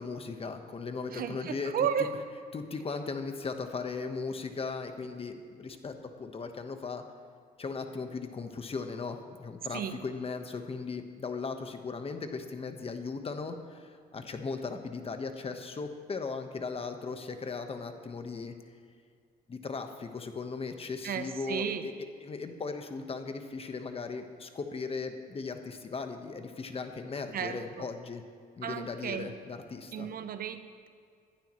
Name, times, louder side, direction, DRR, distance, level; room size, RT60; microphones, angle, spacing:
voice 1, 0.0-1.7 2.5-7.0 7.6-18.5 19.5-21.9 22.2-28.2 28.6-30.1, left 4 dB, 35° left, 6 dB, 1.2 m, -37 dB
voice 2, 1.1-2.1 9.7-10.0 21.0-21.9 27.3-27.9 28.6-29.3 29.9-30.9, right 8 dB, 55° right, 10 dB, 0.8 m, -34 dB
20.5 x 11.5 x 3.1 m, 2.2 s
cardioid pair, 90°, 18 cm